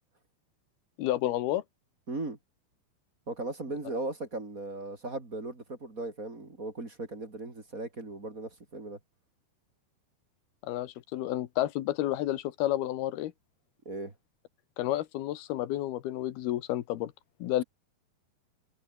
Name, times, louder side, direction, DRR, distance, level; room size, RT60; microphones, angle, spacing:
voice 1, 1.0-1.6 10.6-13.3 14.8-17.1 17.4-17.6, left 14 dB, 85° left, 3.2 m, -30 dB
voice 2, 2.1-2.4 3.3-9.0 13.8-14.1, right 2 dB, 25° right, 3.3 m, -37 dB
omnidirectional pair, 4.4 m